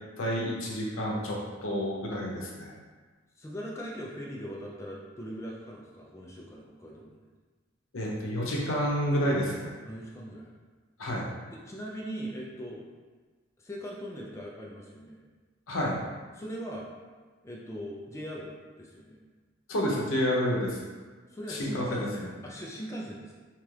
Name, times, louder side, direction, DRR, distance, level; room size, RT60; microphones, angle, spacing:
voice 1, 0.2-2.7 7.9-9.8 11.0-11.2 15.7-16.0 19.7-20.9 21.5-22.3, equal, 80° left, -3 dB, 0.7 m, -29 dB
voice 2, 3.4-7.1 9.8-10.5 11.5-12.8 13.6-15.2 16.3-16.9 17.4-19.2 21.3-23.3, equal, 15° left, -3 dB, 0.3 m, -40 dB
2.9 x 2.3 x 3.1 m, 1.4 s
head